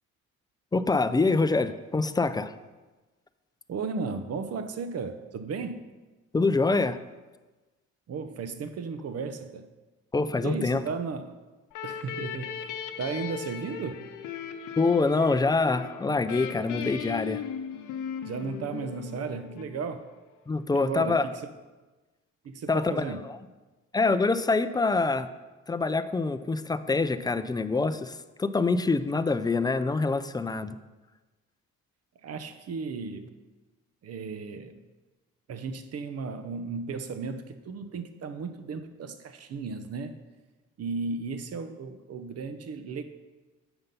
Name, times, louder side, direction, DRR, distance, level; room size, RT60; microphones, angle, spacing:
voice 1, 0.7-2.5 6.3-7.0 10.1-10.8 14.8-17.4 20.5-21.3 22.7-23.4 23.9-25.3 25.7-30.8, left 3 dB, 15° left, 12 dB, 0.4 m, -25 dB
voice 2, 3.7-5.8 8.1-9.7 10.4-11.3 11.8-14.1 18.3-20.0 20.7-21.4 22.4-23.2 32.2-33.4 34.0-34.8 35.5-40.2 40.8-43.0, right 5 dB, 55° right, 10 dB, 0.8 m, -35 dB
sound 1, 11.7-20.2, left 8 dB, 85° left, 0.7 m, -38 dB
8.0 x 5.6 x 5.4 m, 1.2 s
cardioid pair, 90°, 30 cm